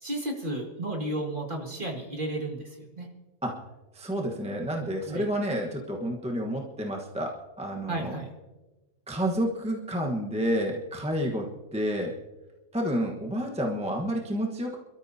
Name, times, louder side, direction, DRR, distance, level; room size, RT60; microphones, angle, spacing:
voice 1, 0.0-3.1 5.1-5.2 7.9-8.3, right 1 dB, 35° right, 0 dB, 2.4 m, -33 dB
voice 2, 3.9-8.1 9.1-12.2 12.7-14.8, equal, 5° right, 0 dB, 1.1 m, -30 dB
27.5 x 13.0 x 2.8 m, 1.1 s
omnidirectional pair, 1.5 m